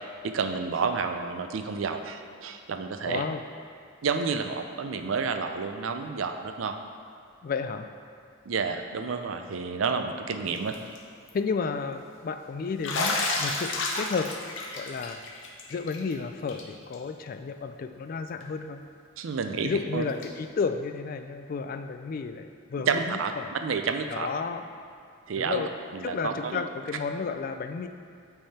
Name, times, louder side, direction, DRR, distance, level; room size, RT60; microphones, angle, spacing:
voice 1, 0.2-3.2 4.0-6.7 8.5-10.8 19.2-20.1 22.9-24.3 25.3-25.6 25.9-26.6, right 5 dB, 75° right, 6 dB, 0.5 m, -30 dB
voice 2, 3.0-3.4 7.4-7.9 11.3-14.3 14.8-15.2 15.7-18.8 19.6-23.5 24.1-24.7 25.4-25.7 26.0-27.9, left 5 dB, 45° left, 8 dB, 0.3 m, -32 dB
Bathtub (filling or washing), 10.6-11.0 11.3-11.4 12.8-16.1 16.5-16.6 16.9-17.0 18.4-18.5 20.2-20.3, left 3 dB, 65° left, 0.8 m, -31 dB
8.9 x 3.5 x 4.2 m, 2.4 s
head